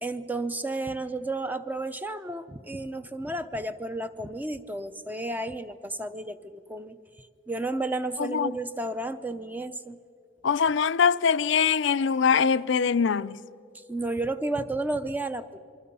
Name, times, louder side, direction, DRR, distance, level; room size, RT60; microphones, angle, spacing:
voice 1, 0.0-7.0 7.5-10.0 13.9-15.6, right 2 dB, 10° right, 0.6 m, -32 dB
voice 2, 8.2-8.5 10.4-13.4, left 6 dB, 70° left, 0.4 m, -23 dB
27.0 x 23.5 x 5.5 m
head